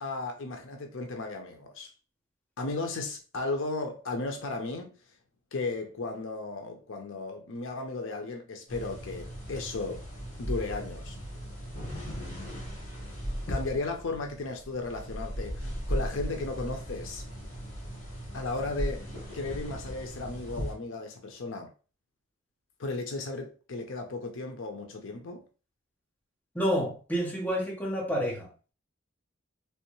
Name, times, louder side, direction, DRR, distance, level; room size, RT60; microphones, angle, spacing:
voice 1, 0.0-1.9 2.6-4.9 5.5-10.1 10.4-11.2 13.5-17.2 18.3-21.7 22.8-25.4, left 3 dB, 70° left, 0.6 m, -35 dB
sound 1, 8.7-20.7, equal, 35° left, 1.5 m, -37 dB
voice 2, 26.5-28.5, equal, 10° left, 1.2 m, -29 dB
3.3 x 3.0 x 3.0 m
head